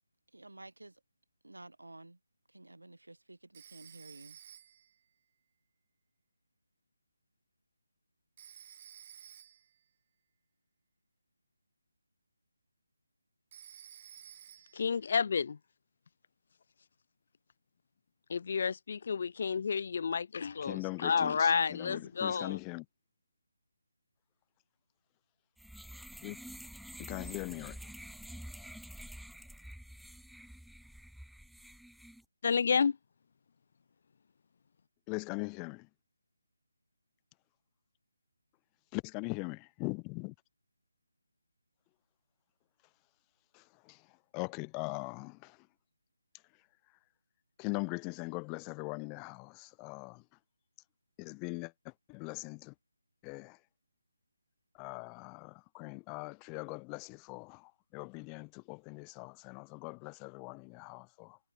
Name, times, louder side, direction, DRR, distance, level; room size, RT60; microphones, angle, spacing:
voice 1, 0.3-1.0 1.4-2.2 2.5-4.4, right 2 dB, 85° right, 4.9 m, -52 dB
Telephone, 3.5-5.0 8.4-9.8 13.5-14.9, right 10 dB, 35° right, 3.1 m, -54 dB
voice 2, 14.7-15.6 18.3-22.6 32.4-33.0, left 6 dB, 45° left, 1.5 m, -30 dB
voice 3, 20.7-21.3 21.8-22.8 26.2-26.4 27.0-27.8 35.1-35.9 38.9-40.3 43.5-44.0 44.3-45.6 47.6-50.2 51.2-51.7 52.1-52.7 53.2-53.6 54.8-61.4, left 34 dB, 15° left, 1.3 m, -41 dB
sound 1, 25.6-32.2, equal, ahead, 0.5 m, -48 dB
figure-of-eight pair, 155°, 0 cm